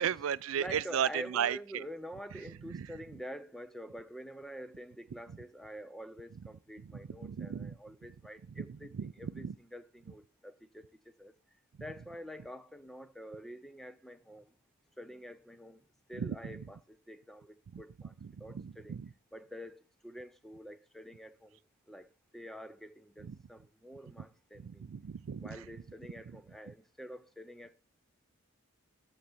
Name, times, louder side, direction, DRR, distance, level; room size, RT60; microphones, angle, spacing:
voice 1, 0.0-1.9 2.6-2.9 6.8-7.8 8.6-9.6 16.1-16.6 17.7-17.8 18.2-19.1 23.2-23.4 24.2-24.3 24.6-25.7 26.7-26.8, right 8 dB, 70° right, 0.4 m, -36 dB
voice 2, 0.6-10.9 11.2-11.3 11.8-14.5 15.0-15.8 16.1-18.1 18.4-19.0 19.3-21.6 21.9-22.1 22.3-24.8 25.4-27.7, equal, ahead, 0.4 m, -47 dB
13.0 x 6.6 x 4.3 m
head